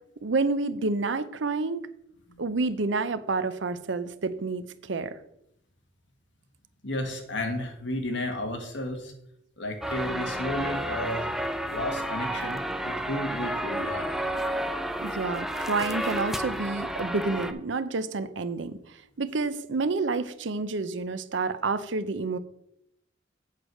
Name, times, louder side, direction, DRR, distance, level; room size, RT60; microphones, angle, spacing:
voice 1, 0.2-1.9 2.4-5.2 15.0-18.8 19.2-22.4, right 3 dB, 65° right, 12 dB, 0.6 m, -29 dB
voice 2, 6.8-9.1 9.6-11.3 11.7-14.1, left 1 dB, 65° left, 4 dB, 1.6 m, -33 dB
sound 1, 9.8-17.5, right 1 dB, ahead, 0.4 m, -31 dB
8.3 x 4.7 x 6.4 m, 0.78 s
head